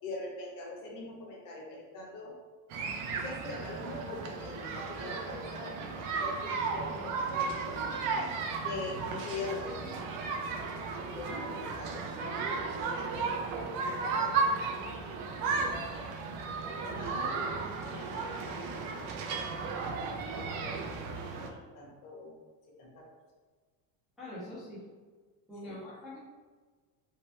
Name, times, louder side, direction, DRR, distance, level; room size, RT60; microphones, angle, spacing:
voice 1, 0.0-2.4 3.1-8.0 8.6-10.4 11.1-12.0 12.3-14.9 15.8-16.5 16.9-20.8 21.5-22.4 22.8-23.2 25.6-25.8, left 2 dB, 50° left, -1 dB, 0.9 m, -43 dB
sound 1, 2.7-21.5, right 4 dB, 50° right, 0.5 m, -34 dB
voice 2, 24.2-24.8 25.5-26.2, left 1 dB, ahead, -10 dB, 0.5 m, -44 dB
3.1 x 2.8 x 3.2 m, 1.4 s
cardioid pair, 170°, 41 cm